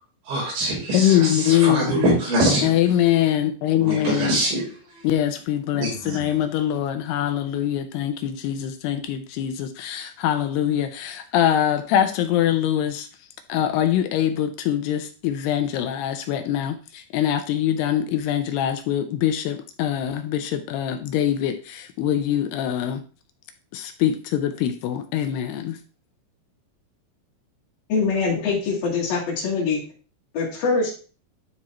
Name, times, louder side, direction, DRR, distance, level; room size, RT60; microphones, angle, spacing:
voice 1, 0.3-2.7 3.8-4.6 5.8-6.2, right 1 dB, 85° right, -5 dB, 6.4 m, -23 dB
voice 2, 0.9-2.2 2.6-4.4 5.0-13.1 13.5-23.0 23.7-25.8, left 11 dB, 80° left, 8 dB, 2.5 m, -23 dB
voice 3, 27.9-29.8 30.3-30.9, left 4 dB, 60° left, -7 dB, 4.4 m, -23 dB
12.0 x 4.4 x 3.0 m, 0.37 s
omnidirectional pair, 5.0 m